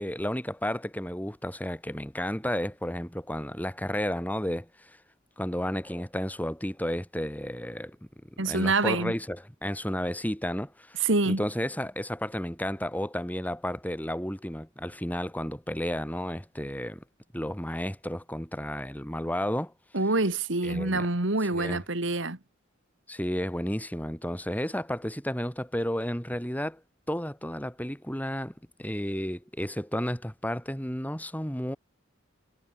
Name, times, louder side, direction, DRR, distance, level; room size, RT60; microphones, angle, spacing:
voice 1, 0.0-4.9 5.4-8.0 8.4-17.0 17.3-19.7 20.6-21.0 21.5-21.8 23.1-26.8 27.1-28.5 28.8-31.8, equal, 10° left, 4.9 m, -32 dB
voice 2, 8.4-9.1 11.0-11.4 19.9-22.4, right 2 dB, 65° right, 2.4 m, -26 dB
head